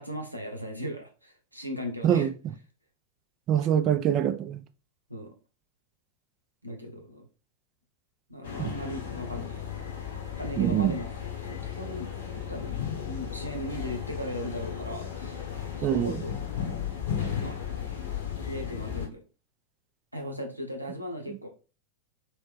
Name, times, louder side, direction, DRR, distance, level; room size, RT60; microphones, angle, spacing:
voice 1, 0.0-2.3 5.1-5.3 6.6-7.2 8.3-9.7 10.4-11.1 11.4-15.4 15.8-16.4 17.4-17.6 18.4-19.2 20.1-21.5, equal, 90° right, 0.8 m, -37 dB
voice 2, 2.0-2.5 3.5-4.6 8.6-8.7 10.6-10.9 15.8-16.1, right 10 dB, 35° right, 0.4 m, -24 dB
sound 1, 8.4-19.1, left 8 dB, 60° left, 1.0 m, -35 dB
3.1 x 3.1 x 3.3 m
figure-of-eight pair, 90°, 0 cm